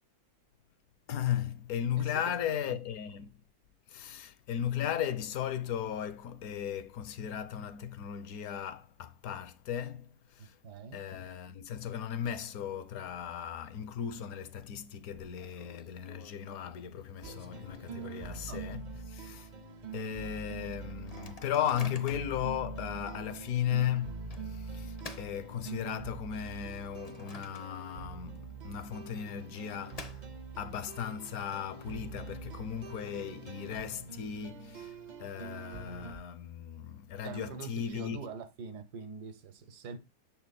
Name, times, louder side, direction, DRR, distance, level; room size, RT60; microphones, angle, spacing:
voice 1, 1.1-3.4 3.9-10.6 10.9-19.5 19.9-30.3 30.6-38.3, left 9 dB, 70° left, 1.1 m, -36 dB
voice 2, 10.4-11.0 18.5-18.6 37.2-40.0, right 5 dB, 80° right, 1.5 m, -44 dB
Microwave oven, 14.5-14.6 14.9-15.0 15.4-18.4 18.9-19.0 19.2-19.6 20.1-20.2 20.9-22.4 23.0-23.2 24.3-26.1 26.6-28.1 28.4-28.5 29.3-30.7, left 4 dB, 45° left, 0.5 m, -51 dB
sound 1, 17.2-36.2, right 5 dB, 50° right, 0.5 m, -44 dB
6.8 x 4.2 x 4.0 m
omnidirectional pair, 1.7 m